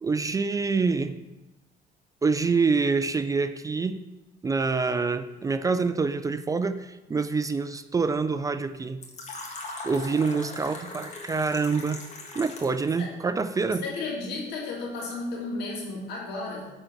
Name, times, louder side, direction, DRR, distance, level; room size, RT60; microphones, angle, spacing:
voice 1, 0.0-1.2 2.2-4.0 4.4-9.0 9.8-12.1 12.3-13.8, right 4 dB, 20° right, 11 dB, 0.3 m, -26 dB
Fill (with liquid), 9.0-12.9, left 2 dB, 40° left, 1.5 m, -40 dB
voice 2, 13.7-16.7, left 3 dB, 80° left, -3 dB, 2.6 m, -33 dB
8.9 x 3.9 x 5.7 m, 1.0 s
cardioid pair, 110°, 17 cm